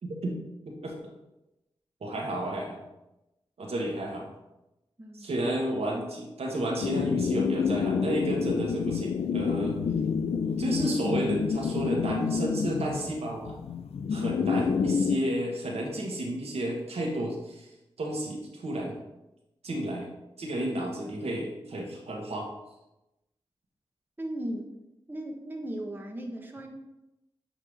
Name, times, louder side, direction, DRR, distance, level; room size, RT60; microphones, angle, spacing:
voice 1, 0.0-0.3 0.6-0.9 2.0-2.8 3.6-4.3 5.1-9.8 10.6-13.5 14.1-17.7 18.0-19.0 19.6-20.1 20.4-22.5, right 1 dB, 85° right, -1 dB, 1.3 m, -31 dB
voice 2, 5.0-5.3 24.2-24.8 25.1-26.7, right 1 dB, 20° right, 1 dB, 1.0 m, -37 dB
sound 1, 6.8-15.2, left 6 dB, 80° left, 0.4 m, -28 dB
7.5 x 2.8 x 4.9 m, 0.95 s
cardioid pair, 55°, 10 cm